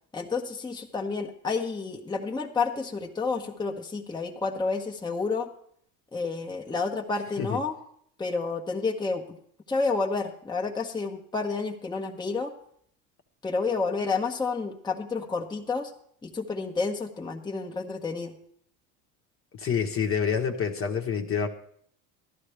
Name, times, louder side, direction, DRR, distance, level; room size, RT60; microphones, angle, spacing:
voice 1, 0.1-5.5 6.1-7.7 8.2-9.4 9.7-12.5 13.4-15.9 16.2-18.3, left 4 dB, 10° left, 1 dB, 1.1 m, -30 dB
voice 2, 19.5-21.5, left 7 dB, 30° left, 4 dB, 1.3 m, -27 dB
14.0 x 12.0 x 3.4 m, 0.65 s
hypercardioid pair, 90°, 42 cm